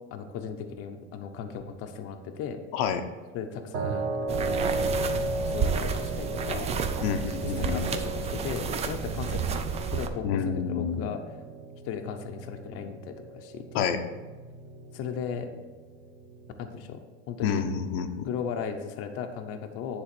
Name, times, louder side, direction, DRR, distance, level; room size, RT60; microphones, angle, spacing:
voice 1, 0.1-2.6 3.3-4.7 5.4-6.7 7.4-11.4 11.8-13.9 14.9-15.5 16.6-17.0 17.3-17.7 18.2-20.0, left 7 dB, 50° left, 6 dB, 0.7 m, -36 dB
voice 2, 2.7-3.0 7.0-7.9 10.2-11.1 13.7-14.0 17.4-18.3, left 7 dB, 85° left, 6 dB, 0.8 m, -28 dB
sound 1, 3.7-16.7, right 2 dB, 50° right, 0.8 m, -36 dB
sound 2, 4.3-10.1, right 6 dB, 20° right, 0.4 m, -31 dB
9.8 x 3.7 x 6.0 m, 1.3 s
cardioid pair, 160°, 31 cm